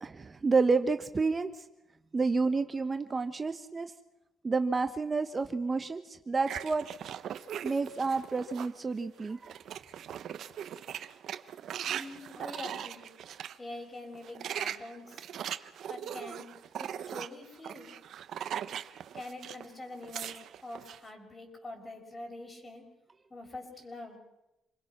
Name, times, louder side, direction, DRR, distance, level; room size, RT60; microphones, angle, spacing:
voice 1, 0.0-1.6 2.1-3.9 4.4-6.8 7.6-9.5, right 4 dB, 30° right, 9 dB, 1.1 m, -29 dB
sound 1, 6.5-8.8 9.2-13.6 14.1-19.7 19.9-21.0, right 9 dB, 70° right, 1.0 m, -40 dB
voice 2, 11.9-13.1 13.6-15.2 15.9-16.5 16.8-17.9 19.1-22.9 23.3-24.2, left 2 dB, 25° left, 3 dB, 6.4 m, -45 dB
28.0 x 21.5 x 6.1 m, 0.96 s
cardioid pair, 90°, 0 cm